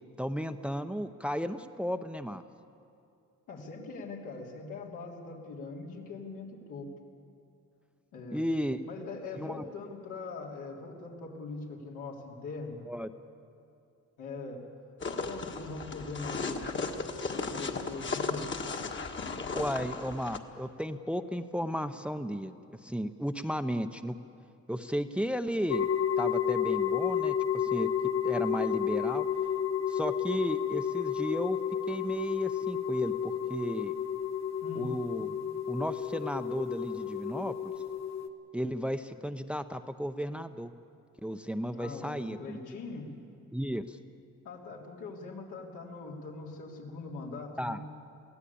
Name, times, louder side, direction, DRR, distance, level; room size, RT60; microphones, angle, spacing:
voice 1, 0.2-2.4 8.3-8.8 9.4-9.6 12.9-13.1 19.5-24.2 24.7-25.9 26.2-27.9 28.2-29.2 29.9-31.6 31.9-33.9 34.7-35.4 35.7-37.7 38.5-40.7 41.2-42.6 43.5-44.0 47.6-47.8, equal, 5° right, 9 dB, 0.7 m, -34 dB
voice 2, 3.5-6.9 8.1-8.5 8.9-12.9 14.2-14.6 15.0-16.7 17.4-18.5 34.6-34.9 41.7-43.1 44.4-47.9, left 3 dB, 85° left, -1 dB, 3.5 m, -42 dB
sound 1, 15.0-20.4, left 4 dB, 40° left, 1.6 m, -35 dB
sound 2, 25.7-38.3, left 8 dB, 60° left, 1.1 m, -31 dB
23.0 x 16.0 x 8.6 m, 2.5 s
cardioid pair, 90°, 30 cm